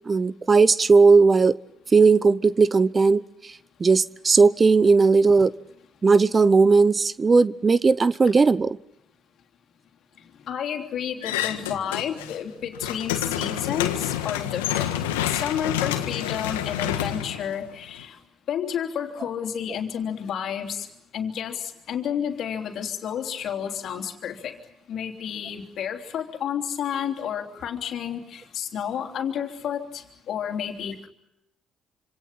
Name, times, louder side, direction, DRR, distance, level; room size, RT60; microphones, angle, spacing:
voice 1, 0.1-1.6 1.9-3.2 3.8-5.5 6.0-8.8, right 4 dB, 35° right, 18 dB, 0.8 m, -17 dB
voice 2, 10.4-15.0 15.2-18.2 18.5-20.9 21.1-24.6 24.9-31.1, left 8 dB, 65° left, 4 dB, 3.3 m, -31 dB
sound 1, 11.2-12.4 12.7-18.0, left 11 dB, 90° left, 1.6 m, -28 dB
27.0 x 26.5 x 5.9 m, 0.85 s
hypercardioid pair, 55°, 0 cm